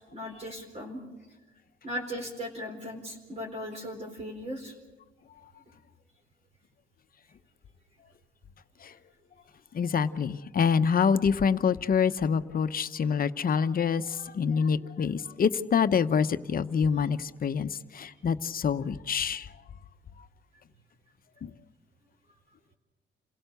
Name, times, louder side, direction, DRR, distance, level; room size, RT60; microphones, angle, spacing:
voice 1, 0.1-1.0 1.8-4.7, equal, 35° right, 0 dB, 4.1 m, -37 dB
voice 2, 9.7-19.5 21.4-21.5, left 6 dB, 45° left, 11 dB, 1.0 m, -26 dB
28.5 x 17.0 x 6.8 m, 1.2 s
cardioid pair, 90°, 20 cm